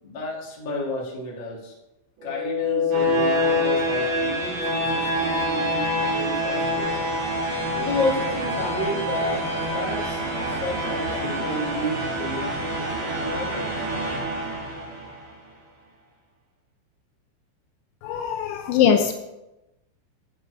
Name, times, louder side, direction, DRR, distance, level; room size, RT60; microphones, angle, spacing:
voice 1, 0.0-1.7 2.2-6.9 7.7-9.5 9.7-13.5 18.7-19.0, left 1 dB, 35° left, -4 dB, 2.1 m, -31 dB
sound 1, 2.2-15.2, left 1 dB, 70° right, 4.5 m, -26 dB
voice 2, 18.0-19.1, left 8 dB, 80° left, 6 dB, 2.9 m, -21 dB
10.0 x 7.1 x 4.8 m, 0.94 s
omnidirectional pair, 5.5 m